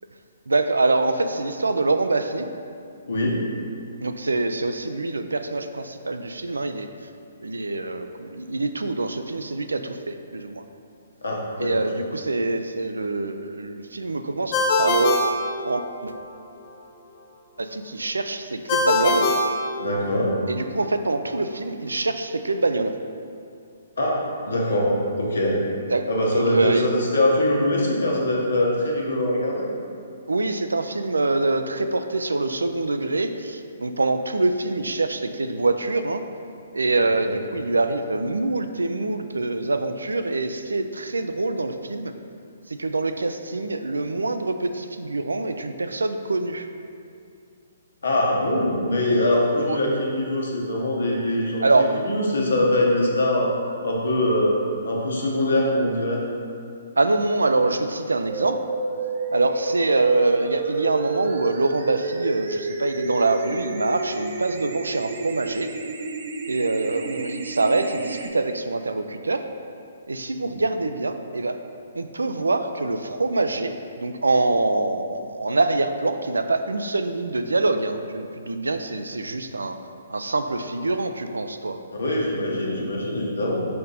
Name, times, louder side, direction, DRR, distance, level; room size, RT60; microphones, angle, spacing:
voice 1, 0.5-2.5 4.0-6.9 7.4-10.6 11.6-15.3 15.6-16.1 17.6-19.3 20.5-22.9 25.9-26.0 26.3-26.9 30.3-36.2 36.7-42.1 42.7-46.6 49.7-49.8 51.6-51.9 57.0-58.6 59.3-65.7 66.5-69.4 70.1-71.6 71.9-79.8 80.1-81.8, right 2 dB, 90° right, 8 dB, 0.4 m, -25 dB
voice 2, 3.1-3.4 11.2-11.9 19.8-20.3 24.0-25.6 26.1-29.6 36.9-37.3 48.0-51.6 52.0-53.5 53.8-54.5 54.8-56.2 70.4-70.5 81.9-83.6, left 1 dB, 80° left, -3 dB, 1.3 m, -23 dB
Ringtone, 14.5-16.2 18.7-20.4, left 2 dB, 35° left, 0.7 m, -23 dB
sound 1, 58.3-68.3, right 3 dB, 50° right, 0.6 m, -30 dB
5.3 x 4.3 x 4.2 m, 2.4 s
hypercardioid pair, 135°, 0 cm